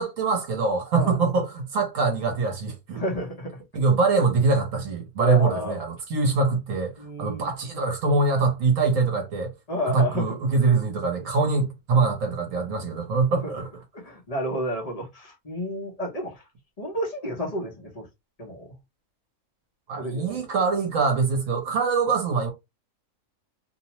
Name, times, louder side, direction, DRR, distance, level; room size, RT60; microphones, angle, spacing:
voice 1, 0.0-3.0 3.7-9.5 9.9-13.7 19.9-22.5, right 4 dB, 65° right, 1.2 m, -23 dB
voice 2, 2.9-3.6 5.2-5.8 7.0-7.5 9.7-10.4 13.4-13.5 13.9-16.4 16.8-18.1 18.4-18.7 20.0-20.4, left 1 dB, 35° left, 0.7 m, -31 dB
2.8 x 2.1 x 2.9 m
omnidirectional pair, 1.5 m